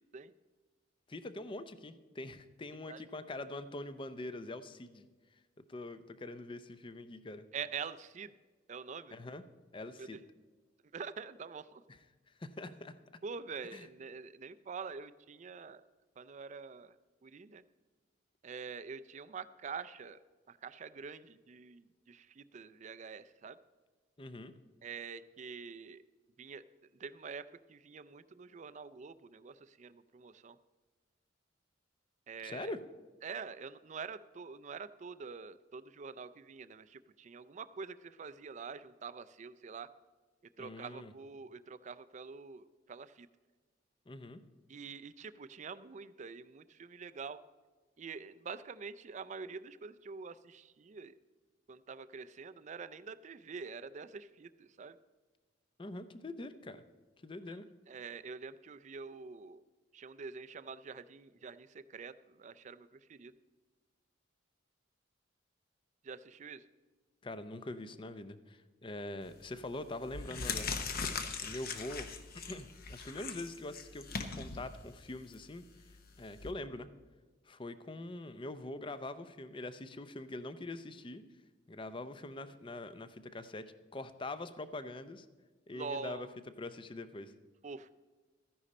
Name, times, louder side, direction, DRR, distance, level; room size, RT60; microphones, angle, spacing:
voice 1, 1.1-5.1 5.7-7.4 9.1-9.4 9.7-10.2 11.9-12.0 12.4-12.9 13.7-13.9 24.2-24.5 32.4-32.8 40.6-41.1 44.1-44.4 55.8-56.8 57.2-57.7 67.2-70.7 71.4-72.1 72.5-75.6 76.2-76.9 77.5-81.2 81.7-85.3 85.7-86.3 86.6-87.3, left 2 dB, 25° left, 12 dB, 0.5 m, -44 dB
voice 2, 7.5-8.3 8.7-9.2 10.0-10.1 10.9-11.8 13.2-15.8 16.2-16.9 17.2-17.6 18.4-20.2 20.5-23.6 24.8-26.0 26.4-26.6 27.0-27.4 27.7-30.6 32.3-32.7 33.2-39.9 40.6-43.3 44.7-47.4 48.0-51.1 51.7-55.0 57.9-59.6 59.9-62.1 62.4-63.3 66.0-66.6 85.7-86.3 87.6-87.9, right 5 dB, 40° right, 14 dB, 0.4 m, -46 dB
sound 1, 69.3-69.5 70.0-76.5, left 5 dB, 50° left, 0.9 m, -40 dB
13.5 x 10.0 x 4.2 m, 1.3 s
head